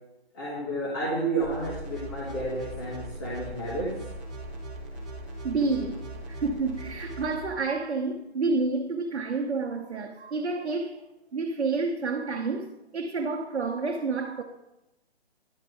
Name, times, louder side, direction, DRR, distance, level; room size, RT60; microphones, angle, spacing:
voice 1, 0.3-3.9, right 2 dB, 20° left, 1.4 m, -31 dB
sound 1, 1.4-7.4, right 1 dB, ahead, 0.9 m, -39 dB
voice 2, 5.4-11.0 11.3-12.7 12.9-14.4, right 3 dB, 85° right, 1.0 m, -29 dB
11.0 x 3.9 x 5.0 m
hypercardioid pair, 165°, 32 cm